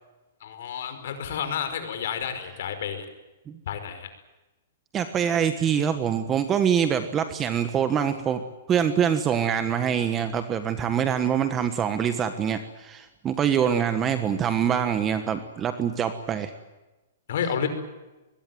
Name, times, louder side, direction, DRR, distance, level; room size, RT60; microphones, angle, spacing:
voice 1, 0.4-3.1 3.7-4.1 13.6-13.8 17.3-17.7, left 8 dB, 60° left, 9 dB, 5.2 m, -30 dB
voice 2, 4.9-8.4 8.7-16.5, right 8 dB, 20° right, 10 dB, 1.4 m, -24 dB
23.0 x 21.0 x 9.4 m, 1.1 s
hypercardioid pair, 160°, 0 cm